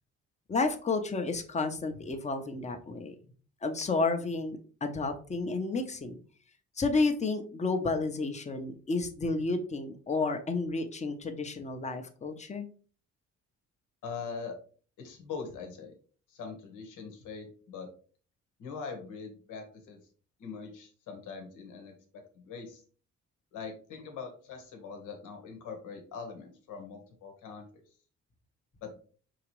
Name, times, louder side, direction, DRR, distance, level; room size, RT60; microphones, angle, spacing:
voice 1, 0.5-3.2 3.6-6.2 6.8-12.7, left 3 dB, 25° left, 6 dB, 0.7 m, -31 dB
voice 2, 14.0-14.6 15.0-15.9 16.3-17.9 18.6-20.0 20.4-22.8 23.5-27.8 28.8-29.0, left 5 dB, 85° left, 4 dB, 1.2 m, -42 dB
4.8 x 2.9 x 3.1 m, 0.41 s
cardioid pair, 90°, 30 cm